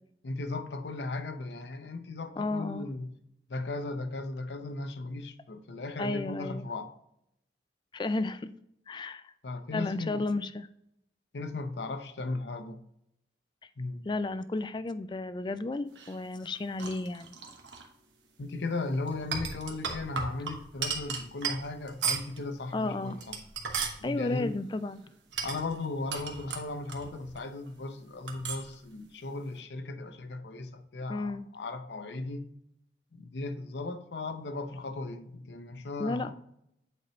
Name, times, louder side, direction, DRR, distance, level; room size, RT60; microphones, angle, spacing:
voice 1, 0.2-3.1 3.5-6.9 9.4-10.3 11.3-12.8 13.8-14.1 18.4-23.4 24.0-24.5 25.4-32.5 33.1-36.3, left 2 dB, 75° left, 0.7 m, -36 dB
voice 2, 2.4-2.9 6.0-6.7 7.9-8.5 8.9-9.3 9.7-10.7 14.1-17.4 22.7-23.2 24.0-25.0 31.1-31.5 36.0-36.3, left 2 dB, 25° left, 0.3 m, -33 dB
sound 1, 15.9-17.9 19.1-22.4 23.0-24.0 25.3-27.4 27.7-27.8 28.3-28.7, right 6 dB, 90° right, 1.1 m, -36 dB
8.3 x 4.5 x 3.1 m
head